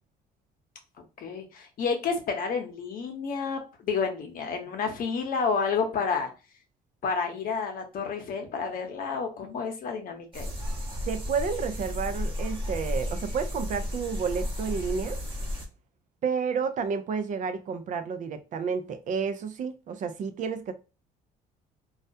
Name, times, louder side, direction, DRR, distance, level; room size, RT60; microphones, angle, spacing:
voice 1, 1.2-6.3 7.0-10.6, left 5 dB, 55° left, 0.8 m, -30 dB
sound 1, 10.3-15.7, left 1 dB, 30° right, 0.9 m, -33 dB
voice 2, 11.1-15.2 16.2-20.7, right 6 dB, 50° right, 0.4 m, -30 dB
2.3 x 2.1 x 2.6 m
cardioid pair, 110°, 17 cm